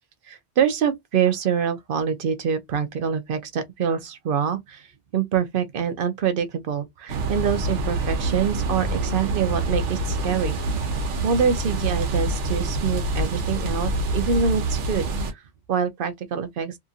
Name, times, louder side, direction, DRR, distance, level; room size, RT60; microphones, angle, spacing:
voice 1, 0.3-10.5 11.2-15.4 15.7-16.8, right 7 dB, 60° right, 0.7 m, -25 dB
sound 1, 7.1-15.3, right 2 dB, 80° right, 1.1 m, -26 dB
2.8 x 2.4 x 2.6 m
omnidirectional pair, 1.2 m